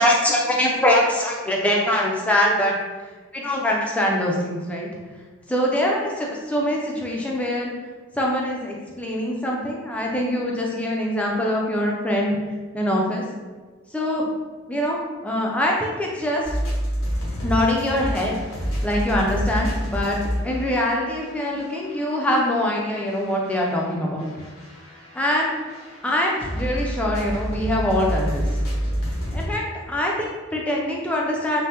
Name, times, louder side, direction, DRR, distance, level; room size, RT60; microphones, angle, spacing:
voice 1, 0.0-2.8 3.3-4.9 5.5-7.7 8.2-12.4 12.7-13.2 13.9-14.3 14.7-15.0 15.2-16.4 17.4-18.3 18.8-20.2 20.4-24.3 25.1-25.5 26.0-28.4 29.3-31.7, left 1 dB, 5° left, -2 dB, 0.3 m, -23 dB
sound 1, 16.4-22.6 23.0-29.4, equal, 80° left, 0.8 m, -29 dB
3.2 x 2.0 x 2.8 m, 1.4 s
head